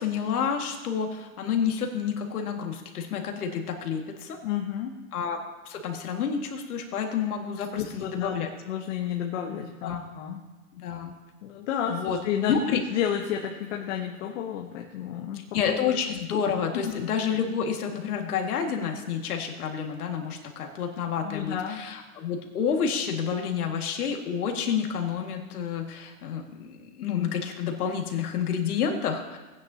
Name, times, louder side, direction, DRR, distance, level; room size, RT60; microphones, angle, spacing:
voice 1, 0.0-4.4 5.1-5.4 5.6-8.5 9.8-10.1 10.7-11.1 11.9-12.2 12.5-12.8 15.5-29.2, left 7 dB, 80° left, 3 dB, 2.0 m, -29 dB
voice 2, 4.4-4.9 7.7-8.4 8.7-10.4 11.4-15.5 15.9-16.0 16.7-17.1 21.2-21.8, left 9 dB, 55° left, 1 dB, 1.1 m, -31 dB
17.5 x 9.6 x 2.8 m, 1.2 s
hypercardioid pair, 150°, 44 cm